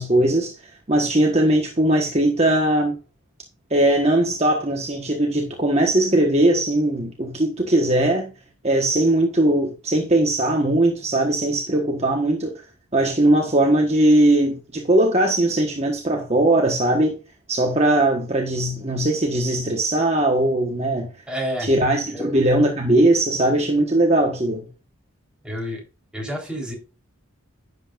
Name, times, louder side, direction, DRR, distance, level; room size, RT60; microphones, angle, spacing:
voice 1, 0.0-3.0 3.7-8.3 8.6-12.6 12.9-17.1 17.5-21.1 21.6-24.7, right 1 dB, 30° right, 1.3 m, -19 dB
voice 2, 21.3-21.7 22.1-22.3 25.4-25.8 26.1-26.7, equal, 5° right, 3.9 m, -29 dB
11.0 x 7.8 x 2.5 m
head